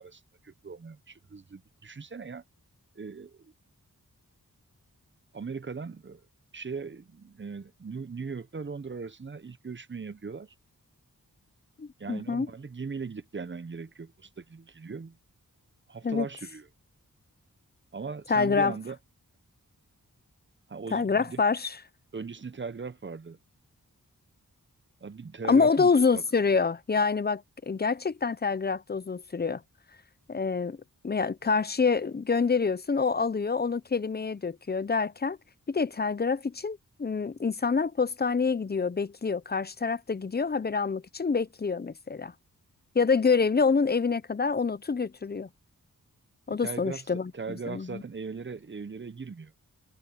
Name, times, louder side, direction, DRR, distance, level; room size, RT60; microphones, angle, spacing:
voice 1, 0.0-2.4 3.0-3.5 5.3-6.3 6.5-10.5 12.0-15.2 15.9-16.7 17.9-19.0 20.7-21.4 22.1-23.4 25.0-26.2 46.6-49.5, right 5 dB, 35° right, 0.7 m, -39 dB
voice 2, 11.8-12.5 16.0-16.3 18.3-18.7 20.9-21.8 25.5-29.6 30.3-30.8 31.0-35.4 35.7-42.3 42.9-45.5 46.5-48.0, left 5 dB, 30° left, 0.6 m, -26 dB
wide cardioid pair, 90°, 34 cm